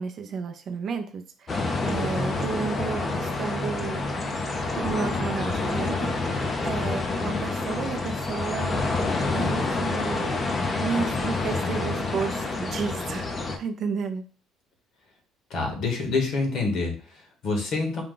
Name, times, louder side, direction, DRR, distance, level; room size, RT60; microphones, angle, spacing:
voice 1, 0.0-4.0 4.8-9.0 9.3-10.3 10.8-14.2, right 6 dB, 35° right, 6 dB, 0.4 m, -32 dB
sound 1, 1.5-13.6, left 3 dB, 20° left, 0.5 m, -28 dB
sound 2, 1.9-6.5, equal, 85° left, 2.1 m, -40 dB
voice 2, 15.5-18.0, left 3 dB, 45° left, 2 dB, 1.2 m, -27 dB
4.8 x 2.2 x 3.7 m, 0.38 s
cardioid pair, 170°, 0 cm